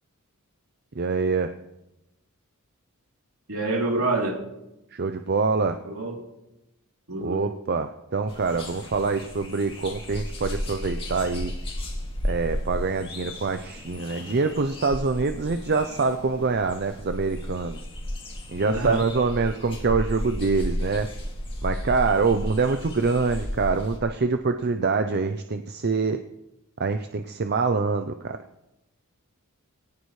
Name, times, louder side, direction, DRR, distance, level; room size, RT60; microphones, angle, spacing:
voice 1, 1.0-1.5 4.9-5.8 7.2-11.5 12.2-17.8 18.5-21.1 21.6-26.2 26.8-28.4, right 4 dB, 45° right, 8 dB, 0.6 m, -25 dB
voice 2, 3.5-4.4 5.8-6.2 7.1-7.4 18.6-19.0, right 3 dB, 70° right, -1 dB, 3.4 m, -26 dB
sound 1, 8.3-24.0, equal, 25° left, 2.4 m, -34 dB
21.0 x 17.5 x 3.2 m, 0.94 s
head